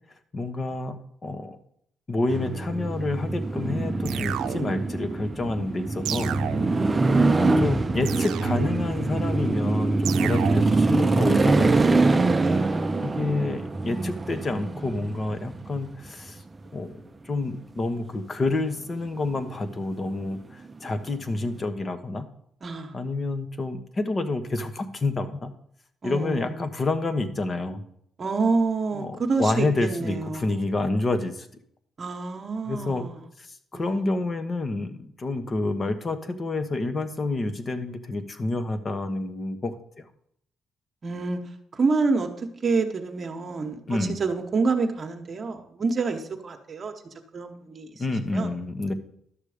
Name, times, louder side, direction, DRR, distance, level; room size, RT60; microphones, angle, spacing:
voice 1, 0.3-1.6 2.1-6.4 7.2-12.1 13.0-16.4 16.7-22.3 22.9-25.5 26.0-27.8 29.0-31.5 32.7-33.0 33.4-40.1 43.9-44.2 48.0-48.9, left 2 dB, 35° left, 10 dB, 1.1 m, -28 dB
sound 1, 2.3-16.3 20.7-21.1, right 3 dB, 25° right, 0.6 m, -24 dB
sound 2, 4.1-5.0 6.1-7.0 8.1-9.0 10.1-10.9, right 10 dB, 85° right, 0.6 m, -33 dB
voice 2, 6.6-7.7 12.3-12.7 22.6-22.9 26.0-26.5 28.2-30.5 32.0-33.2 33.7-34.0 41.0-41.4 41.7-46.9 47.3-48.0 48.3-48.5, right 4 dB, 40° right, 4 dB, 1.1 m, -28 dB
11.5 x 6.7 x 5.0 m, 0.71 s
cardioid pair, 90°, 0 cm